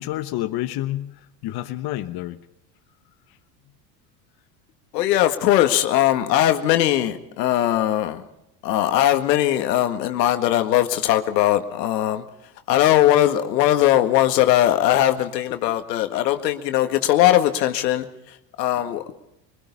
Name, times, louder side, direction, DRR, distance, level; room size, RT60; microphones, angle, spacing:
voice 1, 0.0-2.4, left 14 dB, 50° left, 8 dB, 1.2 m, -29 dB
voice 2, 4.9-8.2 8.6-12.2 12.7-18.0 18.6-19.1, left 13 dB, 80° left, 8 dB, 1.9 m, -19 dB
23.0 x 21.5 x 5.6 m, 0.88 s
hypercardioid pair, 85°, 48 cm